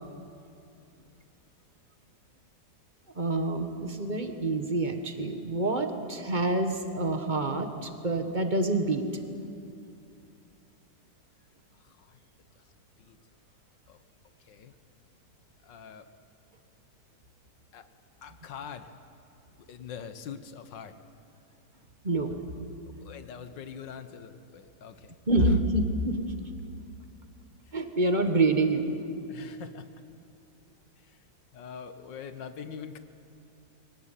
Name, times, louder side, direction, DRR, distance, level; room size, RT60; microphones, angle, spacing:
voice 1, 3.1-9.0 22.0-22.4 25.3-26.3 27.7-28.9, right 2 dB, 25° right, 6 dB, 1.5 m, -27 dB
voice 2, 11.8-12.2 12.6-12.7 13.0-13.2 13.9-14.0 14.5-14.7 15.6-16.1 17.7-17.9 18.2-18.9 19.7-20.9 23.0-25.6 29.3-29.9 31.0-31.2 31.5-33.0, left 7 dB, 80° left, 10 dB, 1.8 m, -44 dB
24.0 x 18.0 x 9.1 m, 2.6 s
omnidirectional pair, 2.0 m